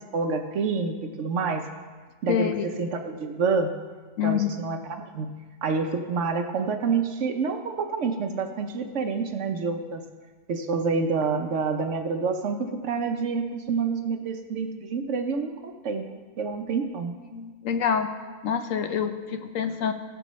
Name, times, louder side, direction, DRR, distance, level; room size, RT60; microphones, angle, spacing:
voice 1, 0.1-1.7 2.2-3.7 4.2-4.8 5.1-5.3 5.6-10.0 10.5-12.6 12.8-17.1, right 5 dB, 65° right, 6 dB, 0.9 m, -28 dB
voice 2, 2.3-2.6 4.2-4.5 17.3-18.1 18.4-19.9, left 8 dB, 70° left, 8 dB, 1.0 m, -26 dB
17.0 x 6.8 x 3.1 m, 1.4 s
omnidirectional pair, 1.5 m